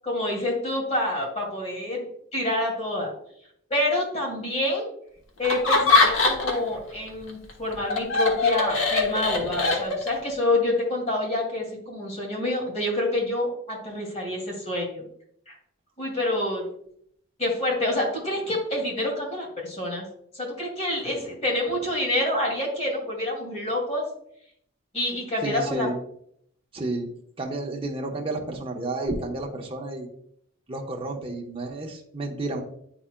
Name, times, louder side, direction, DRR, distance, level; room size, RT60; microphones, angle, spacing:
voice 1, 0.0-2.0 2.3-3.1 3.7-4.9 5.4-15.1 15.5-15.6 16.0-16.6 17.4-20.0 20.3-24.0 24.9-25.9, left 1 dB, 35° left, -1 dB, 2.4 m, -27 dB
Laughter, 5.4-6.7 7.1-10.3, left 3 dB, 90° left, 1.3 m, -22 dB
voice 2, 25.4-26.0 26.7-27.1 27.4-30.1 30.7-32.6, right 2 dB, 25° right, 0 dB, 0.9 m, -31 dB
9.9 x 4.8 x 2.2 m, 0.69 s
head